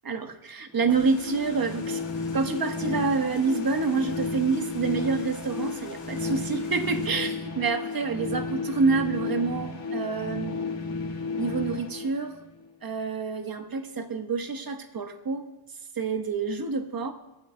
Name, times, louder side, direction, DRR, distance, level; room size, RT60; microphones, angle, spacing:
voice 1, 0.0-2.0 2.3-10.6 11.4-12.3 12.8-15.4 15.9-17.1, right 4 dB, 45° right, 6 dB, 1.4 m, -27 dB
sound 1, 0.7-12.7, left 4 dB, 60° left, 1.8 m, -33 dB
sound 2, 0.9-7.1, left 5 dB, 90° left, 5.0 m, -49 dB
24.0 x 13.0 x 2.3 m, 1.0 s
wide cardioid pair, 105°, 48 cm